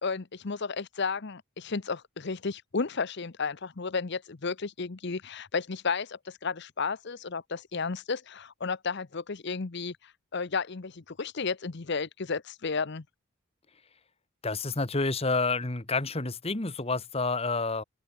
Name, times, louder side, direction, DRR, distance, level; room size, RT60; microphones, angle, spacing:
voice 1, 0.0-13.0, left 4 dB, 55° left, 0.8 m, -33 dB
voice 2, 14.4-17.8, left 3 dB, 30° left, 1.5 m, -29 dB
open air
head